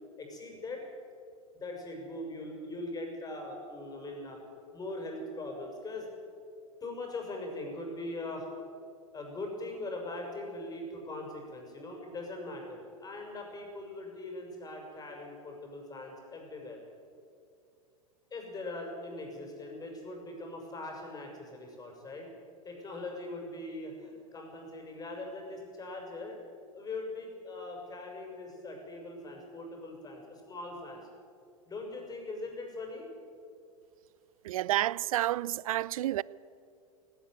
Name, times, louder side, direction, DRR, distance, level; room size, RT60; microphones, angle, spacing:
voice 1, 0.2-0.8 1.5-4.4 4.7-6.1 6.8-8.5 9.1-16.8 18.3-22.3 22.6-26.4 26.7-31.0 31.7-33.0, left 2 dB, 20° left, 6.5 m, -41 dB
voice 2, 34.4-36.2, right 14 dB, 70° right, 0.5 m, -30 dB
17.5 x 17.5 x 9.3 m
hypercardioid pair, 105°, 18 cm